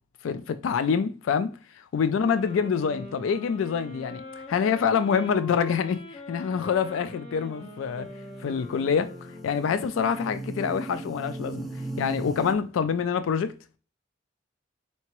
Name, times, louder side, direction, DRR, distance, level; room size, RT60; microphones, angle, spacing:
voice 1, 0.2-4.2 4.5-8.1 8.4-11.7 12.0-13.5, left 6 dB, 90° left, 0.3 m, -26 dB
sound 1, 2.2-9.9, left 2 dB, 35° left, 0.9 m, -43 dB
sound 2, 7.5-12.5, right 2 dB, ahead, 0.4 m, -38 dB
4.4 x 2.9 x 2.9 m
head